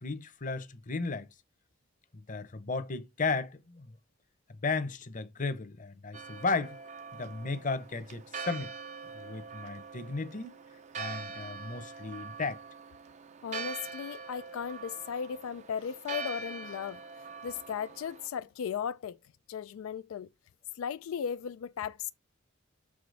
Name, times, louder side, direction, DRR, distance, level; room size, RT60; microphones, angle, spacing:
voice 1, 0.0-1.3 2.1-3.9 4.6-6.8 7.1-8.7 9.1-10.6 11.0-12.6, left 3 dB, 40° left, 0.8 m, -34 dB
Church bell, 6.1-18.3, right 4 dB, 35° right, 0.5 m, -43 dB
voice 2, 13.4-19.2 19.5-20.3 20.7-22.1, left 7 dB, 80° left, 0.3 m, -36 dB
6.8 x 4.9 x 3.9 m
head